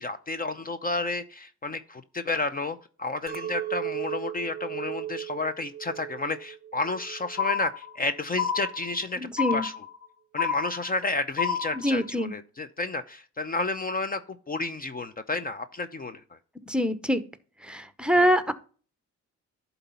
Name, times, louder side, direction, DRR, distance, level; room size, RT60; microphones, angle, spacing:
voice 1, 0.0-9.2 9.5-9.8 10.3-14.2 14.5-16.4 18.1-18.3, left 3 dB, 30° left, 12 dB, 0.6 m, -31 dB
Chink clink, 3.3-7.7 8.0-8.6, right 11 dB, 30° right, 0.6 m, -37 dB
sound 1, 7.4-8.1 8.4-9.1 9.4-10.1 10.4-11.1 11.4-12.1, left 7 dB, 80° left, 1.3 m, -29 dB
voice 2, 9.2-9.7 11.7-12.3 16.7-17.2 17.6-18.5, equal, 5° right, 12 dB, 0.8 m, -24 dB
11.5 x 4.1 x 5.6 m, 0.40 s
cardioid pair, 90°, 30 cm